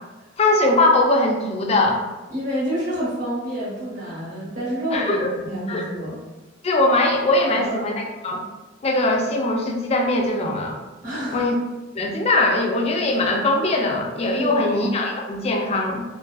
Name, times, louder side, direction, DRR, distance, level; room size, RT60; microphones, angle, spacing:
voice 1, 0.4-2.0 4.9-5.3 5.7-5.9 6.6-8.4 8.8-10.8 11.3-11.5 11.9-16.0, left 2 dB, 35° left, 1 dB, 0.3 m, -21 dB
voice 2, 2.3-6.2 7.5-7.8 11.0-11.5 14.4-14.8, equal, 40° right, -7 dB, 0.8 m, -28 dB
2.5 x 2.2 x 2.2 m, 1.1 s
head